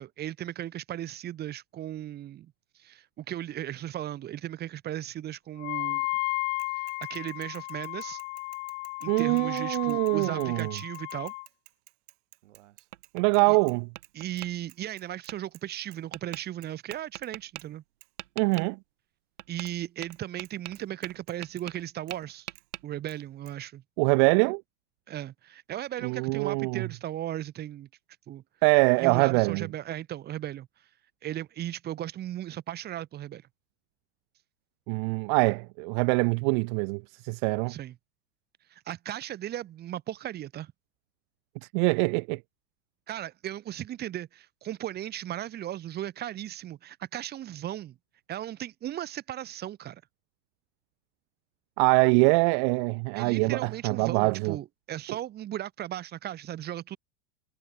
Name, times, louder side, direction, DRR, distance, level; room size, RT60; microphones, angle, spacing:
voice 1, 0.0-2.5 2.8-6.1 6.7-8.2 9.0-11.3 13.5-13.6 14.1-17.8 19.5-22.5 22.8-23.8 25.1-27.9 28.3-28.4 29.0-30.7 31.2-33.4 37.7-38.0 38.7-40.7 43.1-48.0 48.3-50.0 53.1-57.0, right 12 dB, 25° right, 1.9 m, -36 dB
Wind instrument woodwind instrument, 5.6-11.5, left 27 dB, 55° left, 1.7 m, -34 dB
Bicycle / Mechanisms, 6.6-13.8 14.0-14.1 14.4-15.6 15.9-16.0 16.3-17.3 17.6-17.7 18.0-18.1 18.5-18.6 19.7-19.8 20.1-20.2 20.4-21.6 22.1-22.2 22.5-22.7 23.1-23.2 23.5-23.6, right 25 dB, 60° right, 7.3 m, -55 dB
voice 2, 9.1-10.7 13.1-13.9 18.4-18.8 24.0-24.6 26.0-26.8 28.6-29.7 34.9-37.7 41.7-42.4 51.8-54.6, right 39 dB, 45° right, 0.5 m, -24 dB
Tap, 12.4-13.5 14.0-14.5 15.3-15.4 16.1-16.4 16.9-17.6 18.2-18.7 19.4-19.7 20.0-21.9 22.1-22.8, right 15 dB, 80° right, 2.1 m, -42 dB
supercardioid pair, 150°, 35 cm